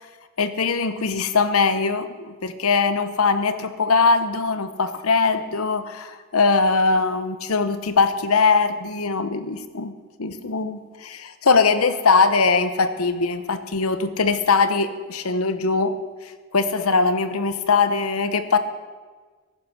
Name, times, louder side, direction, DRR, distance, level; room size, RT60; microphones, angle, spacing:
voice 1, 0.4-9.9 10.2-16.0 16.5-18.6, left 4 dB, 85° left, 12 dB, 1.0 m, -21 dB
14.5 x 11.0 x 6.2 m, 1.4 s
head